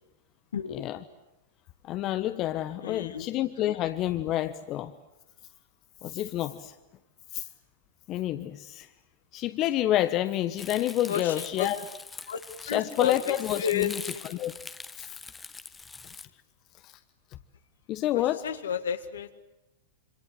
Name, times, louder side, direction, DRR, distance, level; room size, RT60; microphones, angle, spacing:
voice 1, 0.7-1.0 1.8-4.9 6.0-6.7 7.3-7.5 8.1-8.9 9.3-11.9 12.6-14.6 15.0-15.1 16.8-16.9 17.9-18.5, left 13 dB, 40° left, 10 dB, 1.2 m, -29 dB
voice 2, 2.8-3.3 11.1-11.7 12.3-12.4 12.7-14.4 18.1-19.3, left 8 dB, 75° left, 8 dB, 2.0 m, -32 dB
Crumpling crinkling, 10.6-16.2, left 4 dB, 15° left, 1.2 m, -43 dB
27.0 x 25.0 x 8.0 m, 0.96 s
hypercardioid pair, 100°, 0 cm